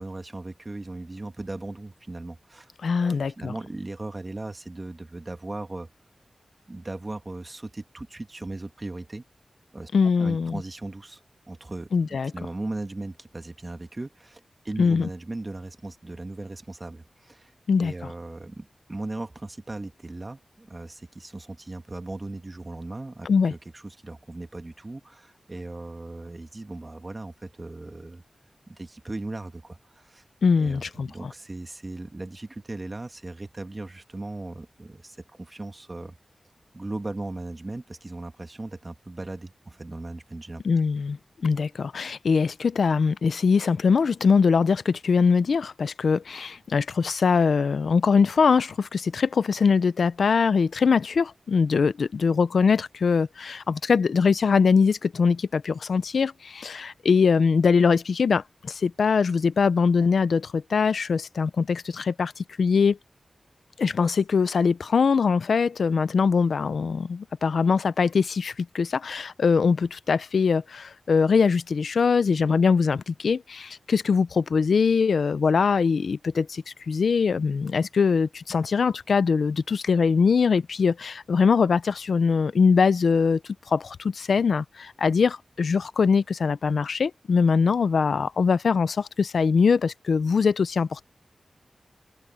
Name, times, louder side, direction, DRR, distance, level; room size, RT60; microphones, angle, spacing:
voice 1, 0.0-5.9 6.7-9.2 9.7-9.9 10.2-11.2 11.5-17.5 17.8-28.2 28.7-30.2 30.6-36.1 36.7-40.6, right 2 dB, 30° right, 1.7 m, -37 dB
voice 2, 2.8-3.5 9.9-10.6 11.9-12.3 14.8-15.1 17.7-17.9 23.3-23.5 30.4-31.1 40.6-63.0 63.8-83.4 83.7-91.0, left 5 dB, 85° left, 0.6 m, -22 dB
wide cardioid pair, 90°, 0 cm